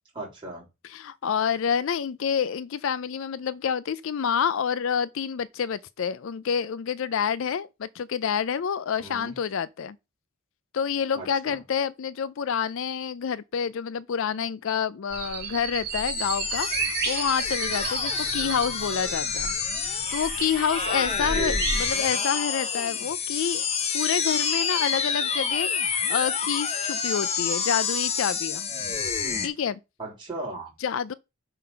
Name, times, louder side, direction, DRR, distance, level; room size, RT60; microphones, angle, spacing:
voice 1, 0.2-0.7 9.0-9.4 11.1-11.6 21.2-21.6 30.0-30.7, right 3 dB, 20° right, 3.6 m, -36 dB
voice 2, 0.9-10.0 10.7-19.5 19.8-23.6 23.9-28.7 29.4-29.8 30.8-31.1, left 7 dB, 60° left, 0.4 m, -28 dB
sound 1, 15.1-21.9, right 5 dB, 45° right, 2.1 m, -32 dB
sound 2, 15.9-29.5, left 6 dB, 30° left, 0.7 m, -28 dB
7.3 x 3.9 x 5.7 m
head